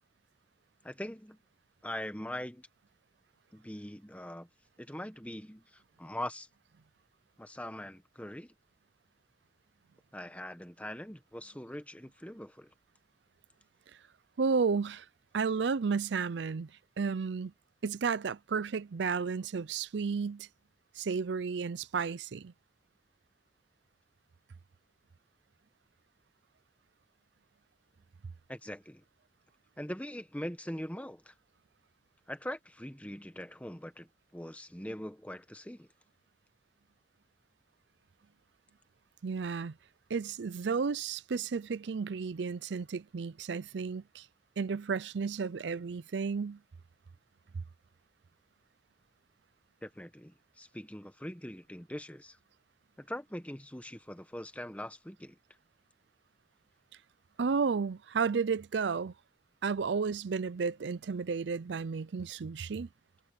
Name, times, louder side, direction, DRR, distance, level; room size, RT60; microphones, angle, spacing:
voice 1, 0.8-1.4 1.8-2.7 3.5-4.5 4.8-6.5 7.4-8.5 10.1-12.7 28.5-29.0 29.8-31.3 32.3-34.1 34.3-35.9 49.8-52.4 53.0-55.4, left 1 dB, 10° left, 1.4 m, -42 dB
voice 2, 14.4-15.1 15.3-16.7 17.0-17.5 17.8-20.5 21.0-22.5 39.2-39.7 40.1-44.3 44.6-46.6 57.4-59.1 59.6-62.9, right 5 dB, 75° right, 0.5 m, -32 dB
head